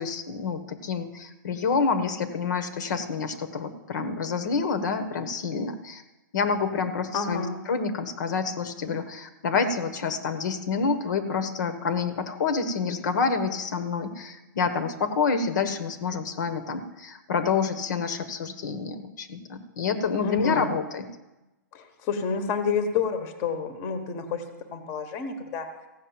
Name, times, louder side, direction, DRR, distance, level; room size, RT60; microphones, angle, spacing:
voice 1, 0.0-6.0 6.3-21.1, left 5 dB, 60° left, 10 dB, 1.1 m, -28 dB
voice 2, 7.1-7.6 20.2-20.7 21.7-24.4 24.7-25.7, left 5 dB, 25° left, 8 dB, 1.1 m, -29 dB
15.0 x 6.5 x 8.8 m, 1.0 s
hypercardioid pair, 165°, 11 cm